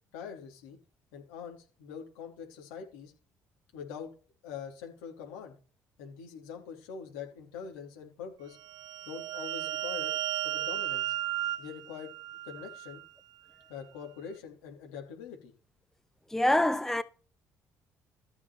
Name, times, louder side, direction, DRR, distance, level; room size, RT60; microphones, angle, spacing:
voice 1, 0.1-0.8 1.1-3.1 3.7-4.1 4.4-5.6 6.0-8.6 9.0-10.1 10.4-11.1 11.6-12.1 12.4-13.0 13.7-15.5, left 7 dB, 85° left, 4.2 m, -43 dB
sound 1, 8.6-13.1, right 14 dB, 60° right, 0.6 m, -35 dB
voice 2, 16.3-17.0, left 1 dB, 5° left, 0.8 m, -25 dB
14.0 x 6.0 x 4.4 m
hypercardioid pair, 60°, 8 cm